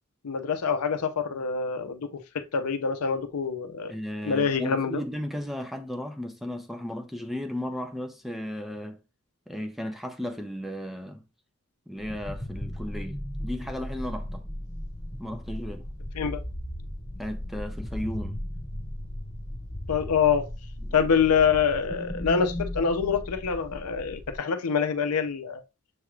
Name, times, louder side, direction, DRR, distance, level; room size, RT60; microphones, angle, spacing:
voice 1, 0.2-3.9 4.2-5.0 16.1-16.4 19.9-20.4 20.9-25.6, left 6 dB, 85° left, 0.6 m, -25 dB
voice 2, 3.9-9.0 9.5-11.2 11.9-14.4 15.2-15.9 17.2-18.4 20.8-21.0, equal, ahead, 0.5 m, -35 dB
sound 1, 12.0-24.4, left 1 dB, 30° left, 1.3 m, -36 dB
6.7 x 3.1 x 2.3 m
head